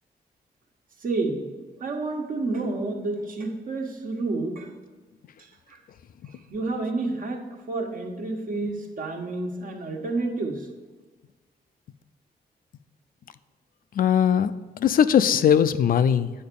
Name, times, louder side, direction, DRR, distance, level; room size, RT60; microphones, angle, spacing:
voice 1, 1.0-1.5 1.8-4.7 5.7-5.8 6.5-7.4 7.7-10.7, right 3 dB, 60° right, 2 dB, 1.3 m, -29 dB
voice 2, 14.0-16.3, left 8 dB, 60° left, 13 dB, 0.4 m, -20 dB
8.6 x 4.6 x 6.8 m, 1.3 s
wide cardioid pair, 130°, 16 cm